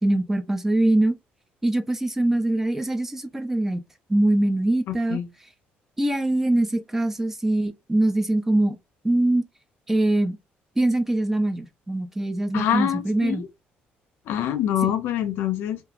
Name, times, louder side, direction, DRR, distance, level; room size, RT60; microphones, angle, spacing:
voice 1, 0.0-1.2 1.6-3.8 4.1-5.2 6.0-8.8 9.0-9.4 9.9-10.4 10.8-13.4 14.8-14.9, right 1 dB, 10° right, 0.3 m, -23 dB
voice 2, 4.9-5.3 12.5-13.5 14.3-15.8, left 10 dB, 75° left, 0.6 m, -25 dB
2.9 x 2.4 x 2.4 m
cardioid pair, 160°, 4 cm